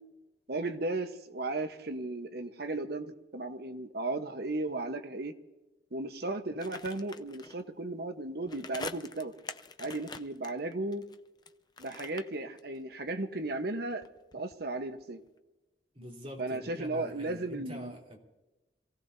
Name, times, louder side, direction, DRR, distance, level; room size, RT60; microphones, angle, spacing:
voice 1, 0.5-5.3 5.9-9.3 9.8-11.0 11.8-14.1 14.3-15.2 16.4-17.9, right 2 dB, 65° right, 7 dB, 1.1 m, -35 dB
sound 1, 6.6-7.6 8.4-11.5 11.8-13.1 13.4-15.0 15.3-15.4, left 4 dB, 25° left, 0.6 m, -45 dB
voice 2, 15.9-18.2, equal, 35° right, -1 dB, 3.3 m, -45 dB
26.5 x 16.5 x 2.7 m, 1.1 s
head